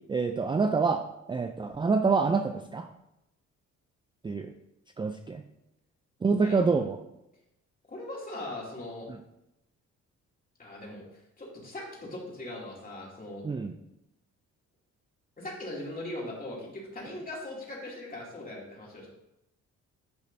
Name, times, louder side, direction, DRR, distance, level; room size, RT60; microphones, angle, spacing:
voice 1, 0.1-2.9 4.2-4.5 5.0-5.4 6.2-7.0 13.4-13.7, right 4 dB, 15° right, 7 dB, 0.4 m, -27 dB
voice 2, 7.9-9.1 10.6-11.0 11.4-13.4 15.4-19.1, left 1 dB, 30° left, -4 dB, 2.7 m, -40 dB
10.5 x 5.2 x 2.7 m, 0.88 s
cardioid pair, 90°, 30 cm